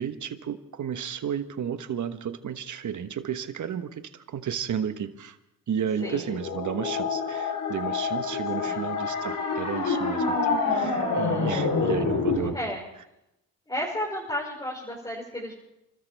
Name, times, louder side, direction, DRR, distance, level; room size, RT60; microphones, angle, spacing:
voice 1, 0.0-5.4 5.7-12.5, right 8 dB, 60° right, 9 dB, 1.3 m, -32 dB
sound 1, 6.0-12.5, left 4 dB, 70° left, 3.6 m, -27 dB
voice 2, 6.0-6.3 8.6-9.0 12.5-12.9 13.7-15.5, equal, 10° left, -4 dB, 5.1 m, -33 dB
29.0 x 13.5 x 3.5 m, 0.87 s
cardioid pair, 80°, 34 cm